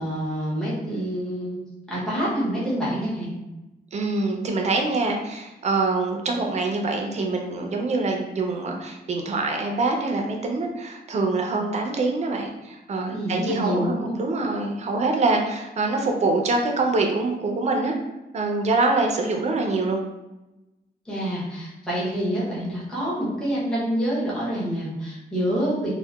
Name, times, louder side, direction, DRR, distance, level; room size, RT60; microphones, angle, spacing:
voice 1, 0.0-1.6 1.9-3.4 13.1-14.1 21.1-25.9, equal, 5° left, -8 dB, 0.7 m, -27 dB
voice 2, 3.9-18.0 18.3-20.0, right 3 dB, 40° right, 2 dB, 0.4 m, -25 dB
2.7 x 2.1 x 2.2 m, 0.99 s
wide cardioid pair, 160°, 17 cm